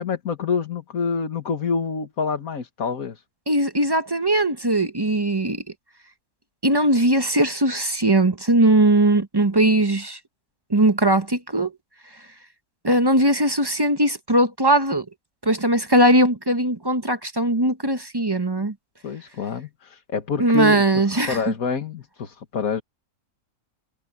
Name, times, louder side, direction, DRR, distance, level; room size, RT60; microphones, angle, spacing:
voice 1, 0.0-3.2 19.0-22.8, left 5 dB, 65° left, 2.0 m, -27 dB
voice 2, 3.5-5.6 6.6-10.2 10.7-11.7 12.8-15.0 15.4-18.7 20.4-21.5, right 1 dB, 20° right, 0.8 m, -19 dB
omnidirectional pair, 1.6 m